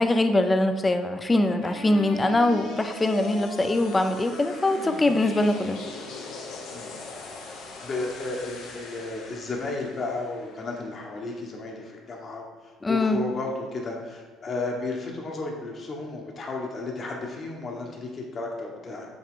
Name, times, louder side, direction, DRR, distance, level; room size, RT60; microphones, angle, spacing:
voice 1, 0.0-5.8 12.8-13.2, left 2 dB, 20° left, 8 dB, 0.5 m, -23 dB
sound 1, 1.6-11.7, left 3 dB, 70° left, 1.1 m, -40 dB
voice 2, 7.8-12.5 12.9-19.1, left 3 dB, 40° left, 0 dB, 1.4 m, -33 dB
7.8 x 3.6 x 3.8 m, 1.4 s
supercardioid pair, 90°, 0 cm